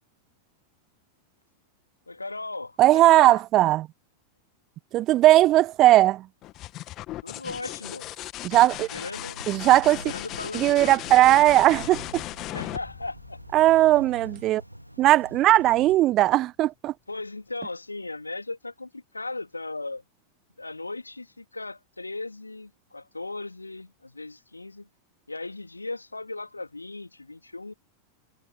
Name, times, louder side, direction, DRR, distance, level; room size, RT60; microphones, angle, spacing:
voice 1, 2.1-3.4 7.2-8.1 8.9-9.4 10.0-11.0 12.5-13.4 13.7-14.1 17.1-20.0 20.6-24.9 25.3-27.7, left 2 dB, 80° left, 3.6 m, -37 dB
voice 2, 2.8-3.9 4.9-6.3 8.4-8.9 9.5-10.0 10.5-12.2 13.5-14.6 15.0-16.9, right 15 dB, 35° right, 1.0 m, -18 dB
sound 1, 6.4-14.0 15.8-16.3, left 16 dB, 35° left, 2.4 m, -37 dB
sound 2, 8.5-16.0, equal, 90° right, 3.1 m, -45 dB
figure-of-eight pair, 90°, 0 cm